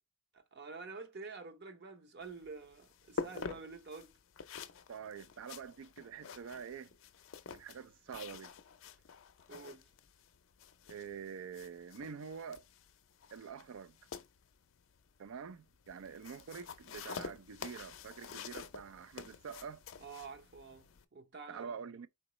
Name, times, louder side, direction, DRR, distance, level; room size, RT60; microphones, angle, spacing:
voice 1, 0.5-4.1 9.5-9.8 20.0-21.7, right 4 dB, 55° right, 0.9 m, -48 dB
sound 1, 2.2-21.0, left 5 dB, 65° left, 0.5 m, -48 dB
voice 2, 4.9-6.9 7.5-8.5 10.9-12.6 13.3-14.0 15.2-19.8 21.5-22.1, right 6 dB, 80° right, 0.4 m, -46 dB
4.5 x 3.8 x 3.0 m
head